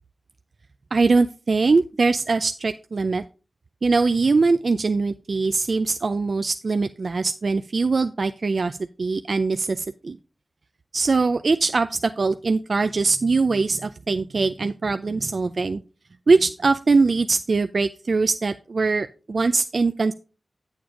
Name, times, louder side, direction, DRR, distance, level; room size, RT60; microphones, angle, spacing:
voice 1, 0.9-3.2 3.8-10.2 10.9-15.8 16.3-20.1, right 4 dB, 70° right, 10 dB, 0.4 m, -22 dB
8.6 x 7.1 x 3.7 m, 0.35 s
cardioid pair, 45°, 0 cm